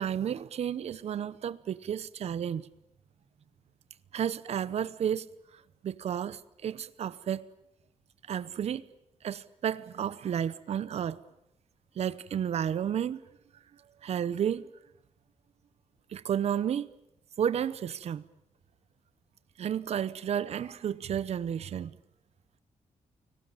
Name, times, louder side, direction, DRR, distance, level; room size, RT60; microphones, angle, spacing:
voice 1, 0.0-2.6 4.1-5.3 5.8-7.5 8.3-8.8 9.2-11.2 12.0-13.2 14.0-14.7 16.1-16.9 17.4-18.2 19.6-21.9, right 9 dB, 55° right, 0.9 m, -32 dB
29.5 x 19.0 x 9.0 m
wide cardioid pair, 145°, 13 cm